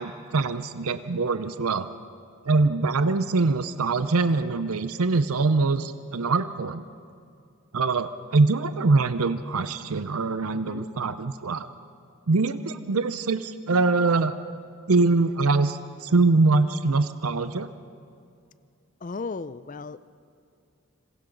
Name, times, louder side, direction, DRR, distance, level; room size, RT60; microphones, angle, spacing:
voice 1, 0.0-1.9 2.4-6.8 7.7-11.7 12.3-14.4 14.9-17.7, right 3 dB, 80° right, 11 dB, 0.7 m, -23 dB
voice 2, 10.5-10.9 19.0-20.0, left 4 dB, 35° left, 15 dB, 0.4 m, -35 dB
26.5 x 26.0 x 3.9 m, 2.4 s
head